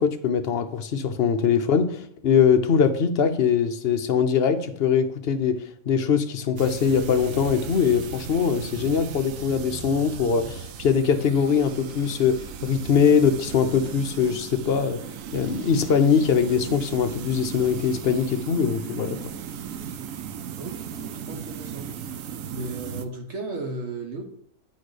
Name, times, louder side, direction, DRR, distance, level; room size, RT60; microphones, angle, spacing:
voice 1, 0.0-15.0 15.3-19.2, left 6 dB, 55° left, 0.7 m, -22 dB
sound 1, 6.6-23.0, right 8 dB, 70° right, 0.9 m, -37 dB
voice 2, 20.6-21.9 22.5-24.2, right 2 dB, 55° right, 1.3 m, -35 dB
9.5 x 4.3 x 4.9 m
omnidirectional pair, 1.6 m